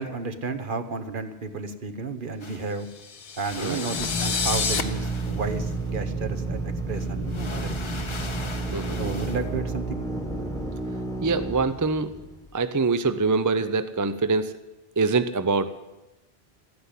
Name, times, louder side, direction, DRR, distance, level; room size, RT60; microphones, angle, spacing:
voice 1, 0.0-2.9 3.4-8.1 9.0-10.0, right 4 dB, 55° right, 9 dB, 1.2 m, -32 dB
sound 1, 2.4-3.0 3.3-6.1 6.9-9.5, left 4 dB, 30° left, 0.7 m, -40 dB
sound 2, 2.9-4.8, left 6 dB, 65° left, 1.1 m, -29 dB
voice 2, 3.6-3.9 8.7-9.0 11.2-12.1 12.5-14.6 15.0-15.7, right 4 dB, 25° right, 11 dB, 0.4 m, -24 dB
Drill, 3.9-12.5, right 2 dB, 5° left, 1.3 m, -31 dB
14.0 x 9.5 x 9.9 m, 1.0 s
omnidirectional pair, 1.1 m